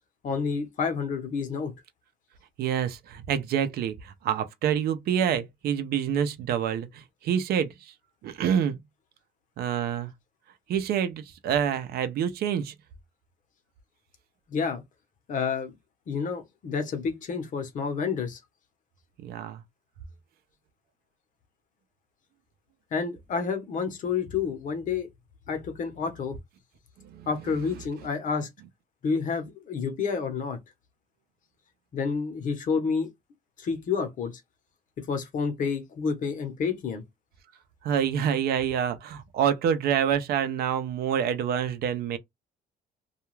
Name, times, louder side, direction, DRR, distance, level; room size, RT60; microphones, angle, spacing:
voice 1, 0.2-1.7 14.5-14.8 15.3-15.7 16.1-18.4 22.9-25.1 25.5-26.4 27.3-28.5 29.0-30.6 31.9-33.1 33.6-34.4 35.1-37.0, left 5 dB, 50° left, 0.9 m, -29 dB
voice 2, 2.6-7.9 8.2-8.8 9.6-10.1 10.7-12.7 19.2-19.6 27.0-27.3 37.8-42.2, right 8 dB, 65° right, 0.6 m, -27 dB
2.4 x 2.2 x 3.1 m
cardioid pair, 110°, 17 cm